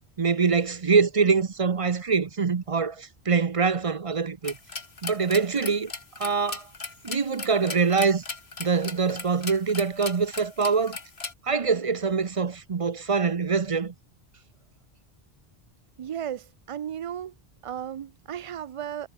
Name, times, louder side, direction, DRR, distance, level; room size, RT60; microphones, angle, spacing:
voice 1, 0.2-4.6 5.0-5.9 6.2-6.7 7.0-8.2 8.6-11.0 11.4-13.9, right 5 dB, 35° right, 0.7 m, -24 dB
sound 1, 4.4-11.3, left 4 dB, 80° left, 2.5 m, -37 dB
voice 2, 16.0-17.3 17.6-19.1, right 9 dB, 55° right, 0.3 m, -35 dB
omnidirectional pair, 1.0 m